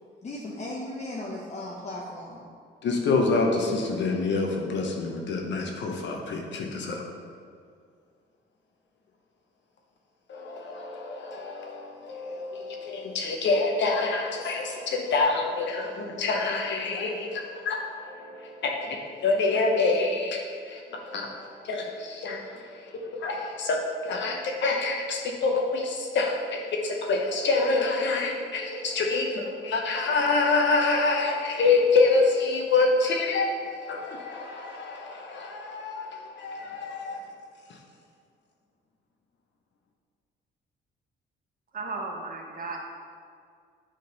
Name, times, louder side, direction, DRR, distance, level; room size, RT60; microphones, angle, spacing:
voice 1, 0.2-2.4, left 1 dB, 35° left, -3 dB, 0.9 m, -36 dB
voice 2, 2.8-7.0 10.3-37.2 37.7-37.8, left 3 dB, 65° left, 1 dB, 0.9 m, -27 dB
voice 3, 41.7-42.8, right 3 dB, 45° right, 0 dB, 1.2 m, -35 dB
6.6 x 3.8 x 5.3 m, 2.2 s
cardioid pair, 90°, 20 cm